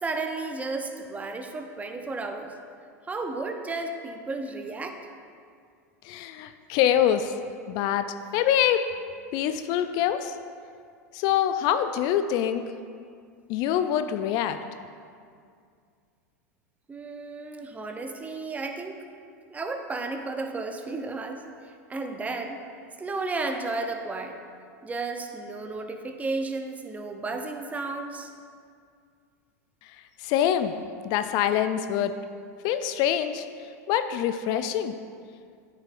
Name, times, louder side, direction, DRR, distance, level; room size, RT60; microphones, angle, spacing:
voice 1, 0.0-2.5 3.1-5.0 16.9-19.0 19.5-21.4 21.9-22.6 23.0-24.4 24.8-28.3, right 3 dB, 15° right, 5 dB, 0.6 m, -33 dB
voice 2, 6.0-7.3 7.7-8.8 9.3-10.4 11.1-12.6 13.5-14.6 30.2-30.7 31.0-32.2 32.6-33.5 33.9-34.9, left 10 dB, 50° left, 10 dB, 0.3 m, -25 dB
8.7 x 6.4 x 2.5 m, 2.2 s
hypercardioid pair, 95°, 9 cm